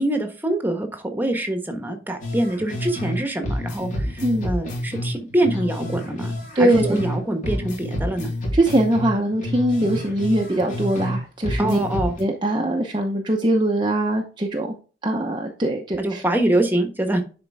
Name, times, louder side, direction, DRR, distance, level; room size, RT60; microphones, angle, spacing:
voice 1, 0.0-8.3 11.6-12.1 16.0-17.2, right 1 dB, 10° right, 5 dB, 1.3 m, -24 dB
sound 1, 2.2-3.2 3.4-7.2 7.4-11.2 11.4-12.2, left 1 dB, 45° left, 3.3 m, -29 dB
voice 2, 6.5-7.0 8.5-11.8 12.2-14.7 15.0-16.2, right 1 dB, 25° right, 1 dB, 0.8 m, -22 dB
10.5 x 4.4 x 3.5 m, 0.36 s
head